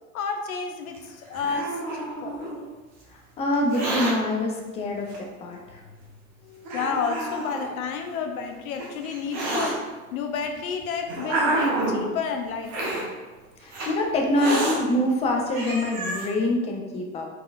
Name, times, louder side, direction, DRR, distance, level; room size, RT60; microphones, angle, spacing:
voice 1, 0.1-2.4 6.4-9.8 10.1-12.9, left 5 dB, 70° left, 5 dB, 0.6 m, -31 dB
Hiss, 0.9-2.6 3.5-4.1 5.1-5.2 6.0-6.1 6.6-7.7 8.5-9.7 10.6-12.1 12.7-13.0 13.7-13.9 14.3-14.8 15.2-15.3 15.5-16.3, right 2 dB, 40° right, 1.2 m, -28 dB
voice 2, 3.4-5.8 13.6-17.3, left 1 dB, 15° left, 1 dB, 0.4 m, -25 dB
4.0 x 3.8 x 2.4 m, 1.2 s
figure-of-eight pair, 85°, 44 cm